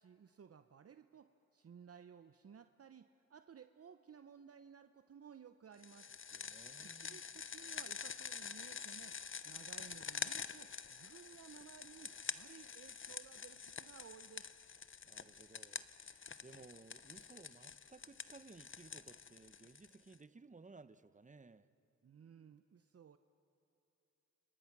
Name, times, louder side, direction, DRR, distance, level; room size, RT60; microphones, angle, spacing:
voice 1, 0.0-6.2 6.8-9.2 9.4-14.5 22.0-23.2, right 7 dB, 50° right, 0.8 m, -58 dB
sound 1, 5.8-20.1, left 6 dB, 40° left, 0.8 m, -47 dB
voice 2, 6.3-7.2 15.1-21.7, right 3 dB, 25° right, 1.0 m, -59 dB
29.0 x 29.0 x 6.1 m
cardioid pair, 50°, 31 cm